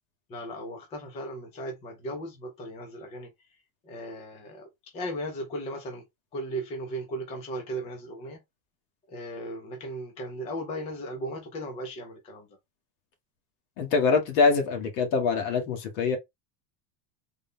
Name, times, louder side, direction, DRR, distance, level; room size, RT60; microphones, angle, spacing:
voice 1, 0.3-3.3 3.8-6.0 6.3-8.4 9.1-12.5, right 1 dB, 15° left, 0.3 m, -36 dB
voice 2, 13.8-16.2, left 4 dB, 50° left, 1.3 m, -24 dB
3.8 x 2.2 x 3.5 m
supercardioid pair, 165°, 43 cm